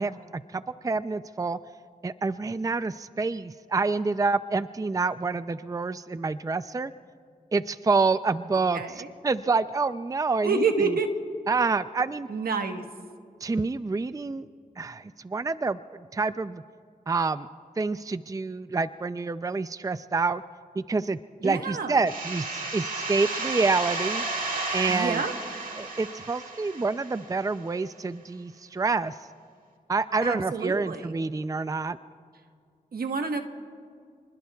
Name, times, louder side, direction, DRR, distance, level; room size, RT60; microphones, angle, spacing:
voice 1, 0.0-1.6 2.0-6.9 7.5-8.8 9.2-11.0 11.5-12.3 13.4-14.5 14.8-15.8 16.1-16.6 17.1-17.5 17.8-20.4 20.8-24.2 24.7-25.2 25.8-29.1 29.9-32.0, right 4 dB, 20° right, 13 dB, 0.4 m, -27 dB
voice 2, 8.7-9.1 10.4-11.1 12.3-12.8 21.4-22.0 24.9-25.3 30.2-31.1 32.9-33.4, right 4 dB, 80° right, 5 dB, 1.3 m, -28 dB
sound 1, 22.1-27.5, right 3 dB, 60° right, 2.2 m, -33 dB
29.5 x 21.0 x 2.4 m, 2.2 s
cardioid pair, 50°, 15 cm